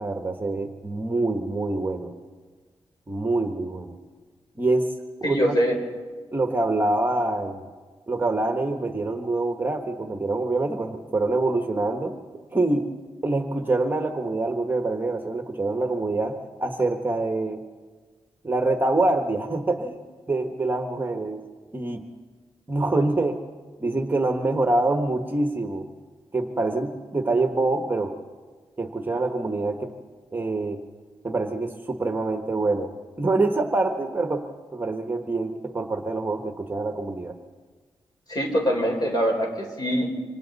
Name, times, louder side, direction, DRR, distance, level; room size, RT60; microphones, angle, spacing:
voice 1, 0.0-2.1 3.1-4.0 4.6-4.9 5.2-5.6 6.3-7.7 8.1-12.1 12.5-12.9 13.2-17.6 18.4-21.4 21.7-22.0 22.7-23.4 23.8-25.9 26.3-28.1 28.8-29.9 30.3-30.8 31.2-32.9 33.2-37.3, right 2 dB, 20° right, 5 dB, 1.1 m, -25 dB
voice 2, 5.2-5.8 38.3-40.1, equal, 45° left, 1 dB, 4.5 m, -23 dB
27.5 x 25.0 x 4.1 m, 1.4 s
wide cardioid pair, 175°, 10 cm